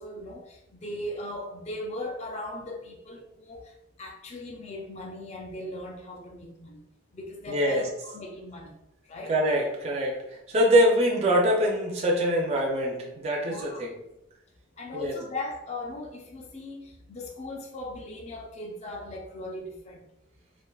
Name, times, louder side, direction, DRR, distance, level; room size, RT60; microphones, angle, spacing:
voice 1, 0.0-6.8 7.1-8.8 9.1-9.4 13.4-13.9 14.8-20.0, left 1 dB, 35° left, 1 dB, 0.4 m, -38 dB
voice 2, 7.5-7.9 9.3-13.9 14.9-15.1, equal, 35° right, -1 dB, 0.4 m, -24 dB
3.3 x 2.4 x 2.3 m, 0.90 s
head